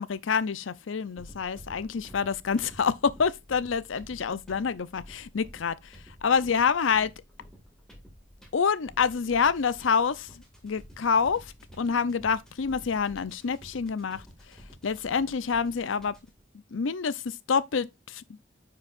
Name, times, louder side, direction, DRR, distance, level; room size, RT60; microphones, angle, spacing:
voice 1, 0.0-5.7 6.2-7.1 8.5-14.6 14.8-16.2 16.7-18.2, left 6 dB, 80° left, 0.6 m, -27 dB
sound 1, 1.2-16.4, equal, 5° left, 2.0 m, -51 dB
9.6 x 4.8 x 2.5 m
head